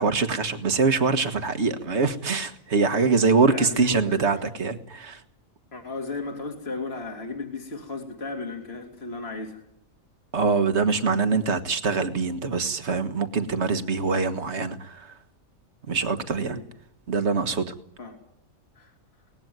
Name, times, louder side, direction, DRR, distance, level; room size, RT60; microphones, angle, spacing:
voice 1, 0.0-5.2 10.3-15.1 15.9-16.6 17.1-17.7, right 4 dB, 55° right, 1.8 m, -24 dB
voice 2, 3.5-4.4 5.7-9.6 16.4-16.6 18.0-18.2 18.8-18.9, left 3 dB, 45° left, 3.0 m, -35 dB
23.5 x 19.0 x 9.4 m
omnidirectional pair, 1.4 m